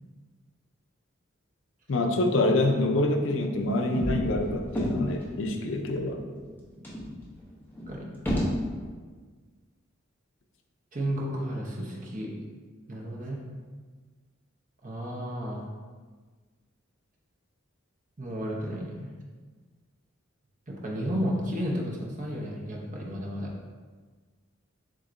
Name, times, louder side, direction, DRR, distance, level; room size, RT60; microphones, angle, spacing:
voice 1, 1.9-6.2, left 2 dB, 70° left, 4 dB, 0.5 m, -26 dB
sound 1, 3.6-5.4 5.9-6.0 6.2-6.4 6.8-8.8, equal, 10° left, 0.9 m, -31 dB
voice 2, 10.9-12.3 12.9-13.4 14.8-15.6 18.2-19.1 20.7-23.5, equal, 40° right, -2 dB, 0.8 m, -32 dB
7.4 x 2.8 x 2.6 m, 1.5 s
head